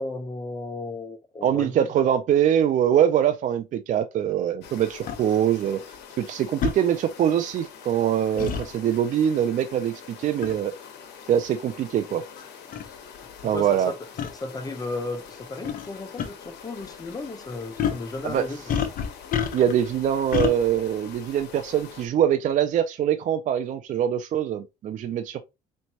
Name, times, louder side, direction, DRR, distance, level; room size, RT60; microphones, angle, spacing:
voice 1, 0.0-2.0 12.8-12.9 13.4-13.9 14.3-18.8, left 2 dB, 20° left, 0.7 m, -35 dB
voice 2, 1.4-5.8 6.2-10.7 11.3-12.2 13.4-13.9 18.2-18.5 19.5-25.4, right 10 dB, 50° right, 0.4 m, -23 dB
sound 1, 4.6-22.1, left 7 dB, 75° left, 1.1 m, -44 dB
sound 2, 5.1-5.2 6.6-6.8 8.4-8.6 10.4-10.6 11.4-11.5 12.4-12.5 12.7-12.9 14.2-14.3 15.6-15.9 16.2-16.3 17.8-18.0 18.7-19.8 20.3-20.5, left 8 dB, 55° left, 0.8 m, -27 dB
4.2 x 3.2 x 2.8 m
cardioid pair, 110°, 17 cm